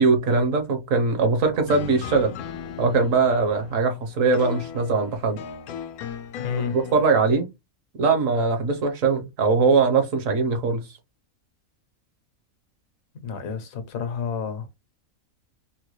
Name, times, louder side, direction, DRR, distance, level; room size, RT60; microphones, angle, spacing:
voice 1, 0.0-2.3 2.8-5.4 6.7-7.5 8.0-10.9, right 4 dB, 65° right, 1.2 m, -21 dB
sound 1, 1.7-7.0, left 7 dB, 85° left, 1.1 m, -37 dB
voice 2, 6.4-6.8 13.2-14.7, left 6 dB, 70° left, 1.2 m, -30 dB
3.9 x 2.2 x 3.0 m
omnidirectional pair, 1.5 m